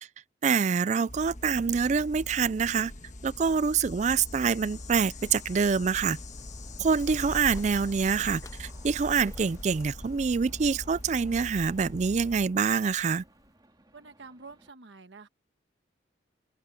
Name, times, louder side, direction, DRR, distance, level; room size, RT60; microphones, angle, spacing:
voice 1, 0.4-2.9 3.2-6.2 6.8-13.2, right 5 dB, 35° right, 0.3 m, -26 dB
sound 1, 1.1-12.5, left 1 dB, 40° left, 1.5 m, -43 dB
sound 2, 4.7-14.7, right 2 dB, 20° right, 1.9 m, -60 dB
Bird, 5.8-13.5, left 1 dB, 15° left, 0.5 m, -45 dB
voice 2, 13.9-15.3, right 4 dB, 70° right, 1.3 m, -48 dB
open air
head